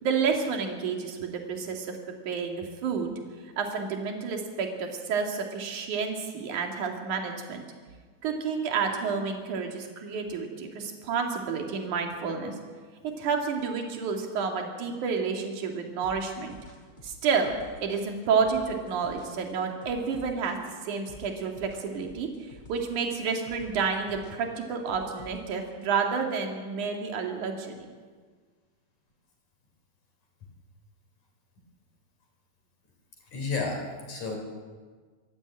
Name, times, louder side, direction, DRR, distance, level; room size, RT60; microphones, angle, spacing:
voice 1, 0.0-2.0 2.2-3.1 3.6-7.6 8.2-12.5 13.2-16.6 17.0-17.5 17.8-20.6 20.8-27.9, right 5 dB, 50° right, 2 dB, 3.2 m, -30 dB
sound 1, 16.0-26.1, left 2 dB, 10° left, 3.8 m, -49 dB
voice 2, 33.3-34.4, left 4 dB, 40° left, 2 dB, 4.9 m, -31 dB
25.0 x 13.5 x 8.9 m, 1.5 s
omnidirectional pair, 5.6 m